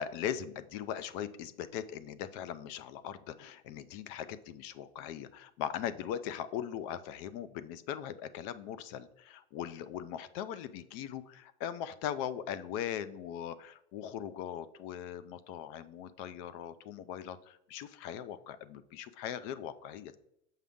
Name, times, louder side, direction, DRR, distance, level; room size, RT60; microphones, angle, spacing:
voice 1, 0.0-20.2, left 10 dB, 40° left, 14 dB, 0.5 m, -40 dB
7.5 x 5.6 x 3.5 m, 0.81 s
supercardioid pair, 140°, 43 cm